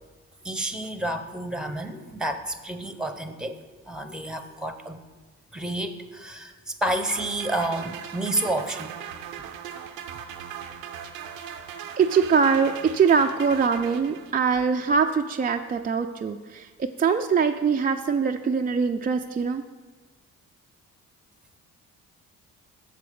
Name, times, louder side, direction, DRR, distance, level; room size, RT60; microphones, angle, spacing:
voice 1, 0.4-3.6 3.9-5.0 5.5-8.9, right 1 dB, ahead, 8 dB, 0.8 m, -30 dB
sound 1, 6.9-14.6, right 8 dB, 90° right, 0.6 m, -39 dB
voice 2, 12.0-19.6, right 6 dB, 25° right, 4 dB, 0.4 m, -23 dB
6.8 x 4.8 x 6.8 m, 1.3 s
hypercardioid pair, 50°, 37 cm